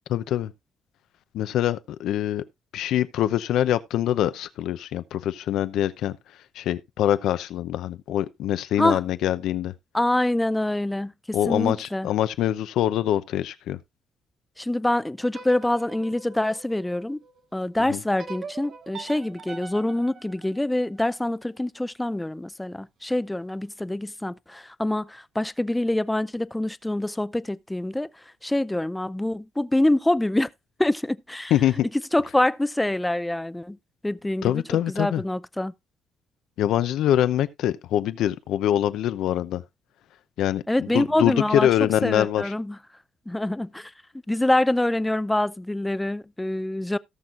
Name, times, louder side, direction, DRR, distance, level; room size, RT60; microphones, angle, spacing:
voice 1, 0.1-0.5 1.3-2.4 2.7-6.1 6.6-9.7 11.3-13.8 17.9-18.0 31.5-31.9 34.4-35.2 36.6-39.6 40.4-42.4, left 11 dB, 85° left, 0.7 m, -24 dB
voice 2, 9.9-12.1 14.6-17.2 17.5-28.1 28.4-30.5 30.8-31.5 32.1-33.8 34.0-35.7 40.7-41.7 42.0-42.8 43.3-43.9 44.3-47.0, left 1 dB, 10° left, 0.4 m, -25 dB
sound 1, 15.3-17.5 18.2-21.3, right 5 dB, 60° right, 1.5 m, -43 dB
17.5 x 6.2 x 2.5 m
cardioid pair, 120°, 0 cm